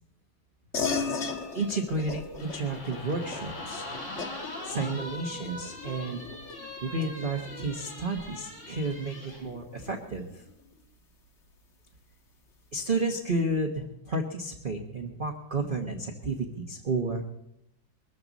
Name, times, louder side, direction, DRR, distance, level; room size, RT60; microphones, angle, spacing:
sound 1, 0.7-10.6, left 4 dB, 40° left, 1.5 m, -38 dB
voice 1, 1.5-3.9 4.6-6.3 6.8-10.4 12.7-17.2, right 2 dB, 30° right, 3 dB, 1.2 m, -31 dB
sound 2, 2.4-9.4, left 1 dB, 65° left, 7.0 m, -42 dB
22.5 x 13.5 x 4.1 m, 0.83 s
omnidirectional pair, 2.2 m